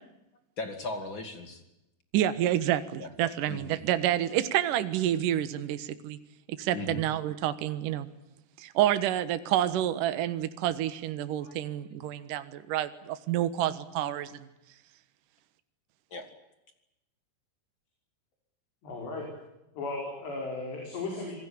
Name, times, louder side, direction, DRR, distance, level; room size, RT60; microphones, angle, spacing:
voice 1, 0.6-1.6 3.0-3.1 3.5-3.7 6.7-7.0 11.4-11.6 16.1-16.3, left 2 dB, 35° left, 7 dB, 2.6 m, -37 dB
voice 2, 2.1-6.2 6.6-8.1 8.6-14.5, right 12 dB, 65° right, 12 dB, 2.6 m, -28 dB
voice 3, 18.8-19.3 19.8-21.4, left 3 dB, 85° left, 0 dB, 7.5 m, -35 dB
26.5 x 20.0 x 8.7 m, 0.92 s
omnidirectional pair, 4.8 m